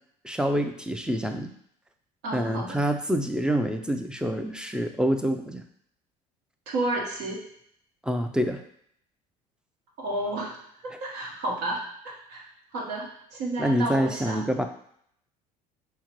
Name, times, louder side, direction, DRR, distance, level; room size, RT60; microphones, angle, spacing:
voice 1, 0.2-1.5 2.3-5.6 8.0-8.6 13.6-14.7, equal, 5° right, 6 dB, 0.4 m, -26 dB
voice 2, 2.2-2.8 6.7-7.5 10.0-10.6 10.8-12.5 12.7-14.4, right 2 dB, 65° right, -1 dB, 1.1 m, -31 dB
5.7 x 2.1 x 2.9 m, 0.68 s
hypercardioid pair, 65°, 20 cm